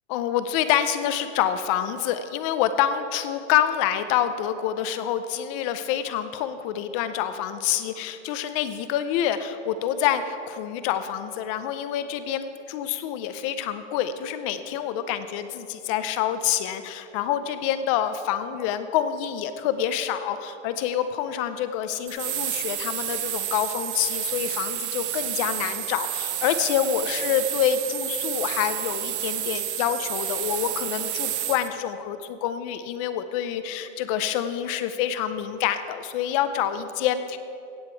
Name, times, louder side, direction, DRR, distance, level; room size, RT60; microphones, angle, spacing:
voice 1, 0.1-37.4, left 10 dB, 25° left, 11 dB, 0.5 m, -27 dB
sound 1, 22.1-31.7, right 12 dB, 65° right, 1.1 m, -30 dB
16.5 x 7.9 x 4.5 m, 2.7 s
supercardioid pair, 150°, 38 cm